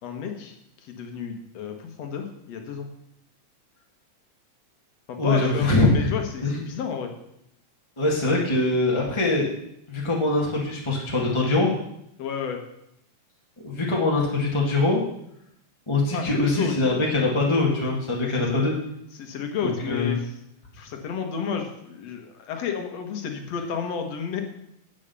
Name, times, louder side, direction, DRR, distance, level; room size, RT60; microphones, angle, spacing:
voice 1, 0.0-2.9 5.1-5.7 5.9-7.1 12.2-12.6 16.1-17.0 18.2-18.6 19.1-20.3 20.7-24.4, left 7 dB, 65° left, 4 dB, 2.5 m, -32 dB
voice 2, 5.2-6.1 6.4-6.6 8.0-9.5 9.9-11.7 13.6-15.0 15.9-18.7 19.6-20.1, left 2 dB, 10° left, -3 dB, 1.5 m, -23 dB
8.7 x 8.4 x 7.0 m, 0.77 s
omnidirectional pair, 3.3 m